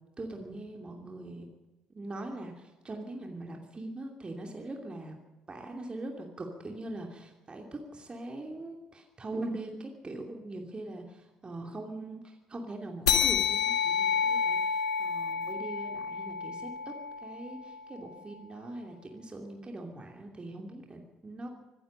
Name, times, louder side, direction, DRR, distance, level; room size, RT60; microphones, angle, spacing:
voice 1, 0.2-1.5 1.9-5.2 5.5-21.5, right 2 dB, 30° right, 2 dB, 2.8 m, -41 dB
sound 1, 13.1-18.0, left 7 dB, 90° left, 1.4 m, -29 dB
24.5 x 10.5 x 5.5 m, 1.1 s
hypercardioid pair, 55°, 3 cm